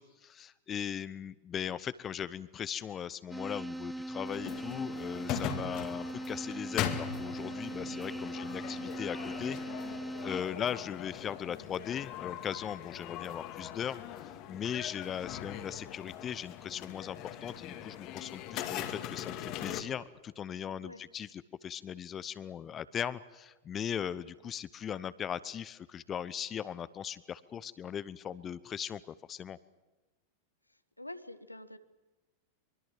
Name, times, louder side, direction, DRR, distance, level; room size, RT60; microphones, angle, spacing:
voice 1, 0.0-14.0 14.5-29.6, left 8 dB, 25° left, 17 dB, 0.9 m, -39 dB
sound 1, 3.3-10.4, right 1 dB, 5° right, 0.8 m, -40 dB
sound 2, 4.3-19.8, left 10 dB, 40° left, 2.2 m, -41 dB
voice 2, 30.7-31.8, left 2 dB, 85° left, 11 dB, 1.4 m, -48 dB
24.5 x 24.0 x 7.7 m, 1.1 s
figure-of-eight pair, 90°, 0 cm